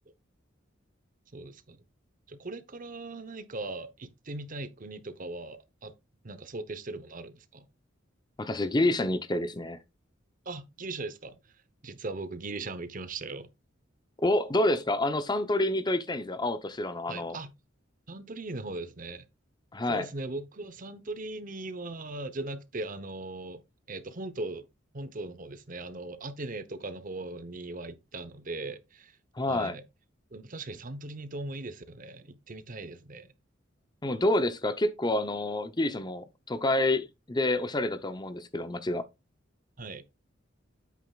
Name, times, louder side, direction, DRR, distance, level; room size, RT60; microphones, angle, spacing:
voice 1, 1.3-1.8 2.3-5.9 6.2-7.7 10.5-11.4 11.8-13.5 17.1-17.5 18.1-19.2 19.9-23.6 23.9-24.6 24.9-29.2 29.5-29.8 30.3-33.3 39.8-40.0, right 2 dB, 45° right, 0.9 m, -39 dB
voice 2, 8.4-9.8 14.2-17.4 19.7-20.1 29.4-29.8 34.0-39.0, left 1 dB, 20° left, 0.7 m, -28 dB
9.2 x 8.4 x 2.4 m
head